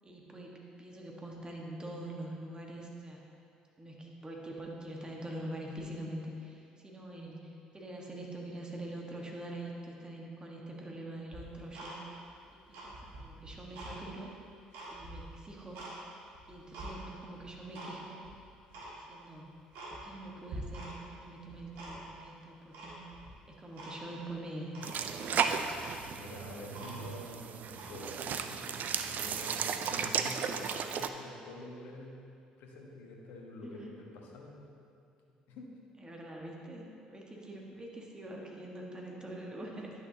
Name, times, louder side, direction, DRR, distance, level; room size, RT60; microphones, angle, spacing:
voice 1, 0.0-3.3 3.8-12.0 12.7-14.3 14.9-15.8 16.5-18.2 18.9-19.5 19.9-23.1 23.5-24.8 25.1-25.8 26.7-27.0 33.6-33.9 36.0-39.9, right 1 dB, 20° right, -1 dB, 1.4 m, -44 dB
Tick-tock, 11.3-12.3 12.6-14.0 14.4-15.9 16.3-16.9 17.4-17.9 18.2-18.3 18.7-18.9 19.3-19.4 19.7-20.2 20.5-21.1 21.4-22.2 22.7-23.3 23.7-23.9 24.3-24.4 24.7-25.0 25.4-25.5 25.7-27.2 27.7-27.9, right 2 dB, 70° right, 1.7 m, -46 dB
sound 1, 24.8-31.1, right 7 dB, 50° right, 0.4 m, -34 dB
voice 2, 26.1-32.2 32.6-34.7 35.5-35.7, left 2 dB, 65° left, -1 dB, 1.2 m, -47 dB
10.5 x 6.5 x 2.8 m, 2.4 s
hypercardioid pair, 55°, 4 cm